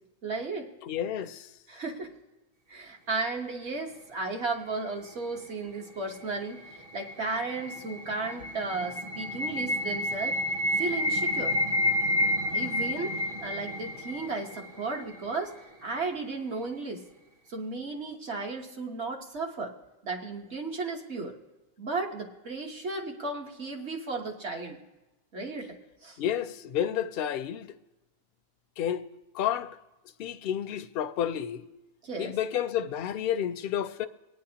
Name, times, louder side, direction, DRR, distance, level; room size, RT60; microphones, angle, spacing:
voice 1, 0.2-0.7 1.7-2.1 2.7-10.4 10.8-11.6 12.5-15.5 15.8-17.0 17.5-19.7 20.0-21.4 21.8-24.8 25.3-26.2 32.0-32.4, right 3 dB, 60° right, 1.5 m, -34 dB
voice 2, 0.8-1.5 26.2-27.7 28.8-29.0 29.3-29.8 30.2-31.7 32.2-34.1, left 10 dB, 60° left, 0.7 m, -30 dB
sound 1, 6.3-15.2, left 1 dB, 30° right, 0.8 m, -30 dB
23.5 x 9.4 x 2.8 m
omnidirectional pair, 1.3 m